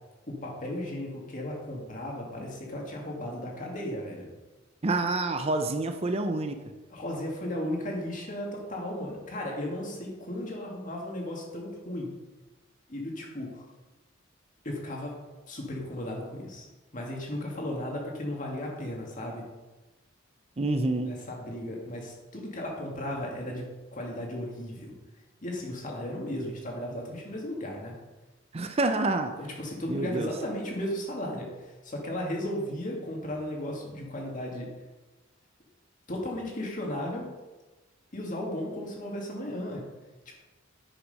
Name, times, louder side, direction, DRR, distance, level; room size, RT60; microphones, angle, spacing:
voice 1, 0.3-4.3 6.9-12.1 12.9-13.7 14.6-15.1 15.5-16.7 16.9-19.4 21.1-23.6 23.9-24.9 25.4-27.9 29.4-34.7 36.1-37.3 38.1-39.8, left 1 dB, 40° left, -1 dB, 2.1 m, -35 dB
voice 2, 4.8-6.6 20.6-21.1 28.5-29.3 29.9-30.3, right 2 dB, 30° right, 7 dB, 0.5 m, -27 dB
9.7 x 5.9 x 5.4 m, 1.2 s
head